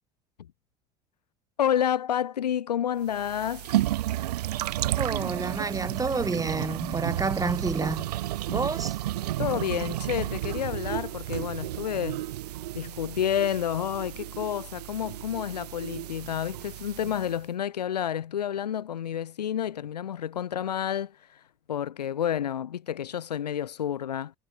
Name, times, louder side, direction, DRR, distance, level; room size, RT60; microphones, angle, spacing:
voice 1, 1.6-3.7 9.4-12.2 12.7-21.4 21.7-24.3, left 9 dB, 90° left, 0.7 m, -29 dB
sound 1, 3.1-17.4, right 14 dB, 80° right, 0.4 m, -32 dB
voice 2, 4.9-8.0 8.5-9.0, right 3 dB, 15° right, 3.8 m, -29 dB
hypercardioid pair, 65°, 20 cm